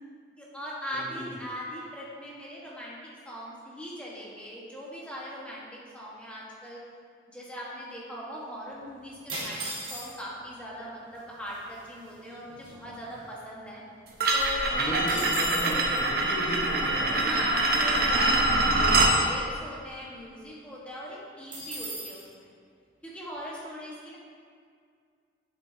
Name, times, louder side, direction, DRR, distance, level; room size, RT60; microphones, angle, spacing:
voice 1, 0.4-3.0 3.2-6.8 7.3-9.6 9.9-13.8 14.3-15.3 17.2-22.2 23.0-24.2, equal, 5° left, -6 dB, 1.4 m, -40 dB
voice 2, 0.9-1.3 14.7-17.3, right 1 dB, 30° left, -3 dB, 1.3 m, -36 dB
sound 1, 9.3-10.4 11.2-11.3 11.5-11.8 12.2-13.7 14.1-14.2 14.4-15.8 21.5-22.2, right 1 dB, 25° right, 1.7 m, -37 dB
sound 2, 14.2-19.2, right 2 dB, 55° right, 0.8 m, -24 dB
9.0 x 7.4 x 2.8 m, 2.2 s
head